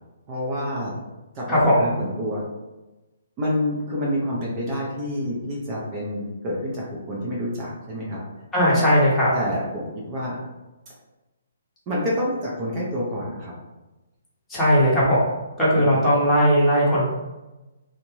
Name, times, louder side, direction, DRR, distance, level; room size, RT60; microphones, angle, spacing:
voice 1, 0.3-0.9 1.3-2.4 3.4-8.2 8.7-8.9 9.3-10.4 11.9-13.5 15.7-16.0, equal, 25° right, -4 dB, 0.6 m, -28 dB
voice 2, 8.5-9.3 14.5-15.2 15.6-17.0, equal, 10° left, -8 dB, 0.9 m, -18 dB
2.6 x 2.1 x 3.1 m, 1.1 s
hypercardioid pair, 155°, 0 cm